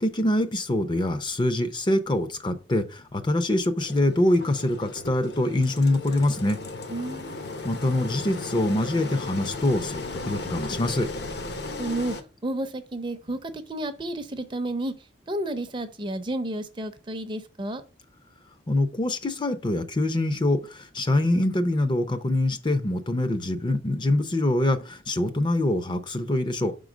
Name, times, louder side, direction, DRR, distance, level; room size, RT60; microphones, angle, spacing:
voice 1, 0.0-6.6 7.6-11.1 18.7-26.7, left 1 dB, 25° left, 0.5 m, -24 dB
Engine, 3.8-12.2, left 3 dB, 60° left, 0.9 m, -36 dB
voice 2, 6.9-7.5 11.8-12.1 12.4-14.9 15.3-17.8, right 1 dB, 25° right, 0.6 m, -31 dB
5.7 x 3.8 x 6.0 m
head